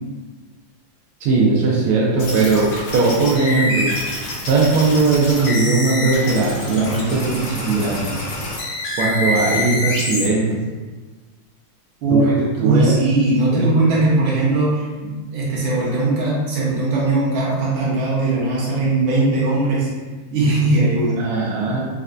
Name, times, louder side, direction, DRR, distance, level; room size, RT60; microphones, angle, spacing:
voice 1, 1.2-3.9 4.4-8.1 9.0-10.6 12.1-12.2 12.6-12.9 13.5-13.7 21.2-21.9, right 3 dB, 90° right, -4 dB, 1.5 m, -18 dB
sound 1, 2.2-10.3, left 2 dB, 80° left, 1.7 m, -26 dB
voice 2, 12.0-19.9 20.3-21.3, right 2 dB, 70° right, -6 dB, 1.6 m, -19 dB
4.4 x 2.2 x 2.4 m, 1.3 s
omnidirectional pair, 2.3 m